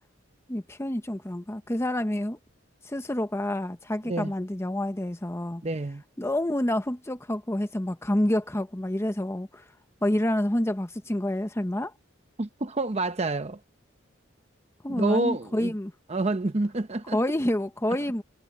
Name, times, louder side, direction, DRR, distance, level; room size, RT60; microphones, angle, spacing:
voice 1, 0.5-2.4 2.8-5.6 6.2-9.7 10.0-11.9 14.8-15.9 17.1-18.2, left 1 dB, 15° left, 0.8 m, -28 dB
voice 2, 5.6-6.0 12.4-13.6 14.9-15.7 16.1-17.2, right 2 dB, 35° right, 0.8 m, -28 dB
head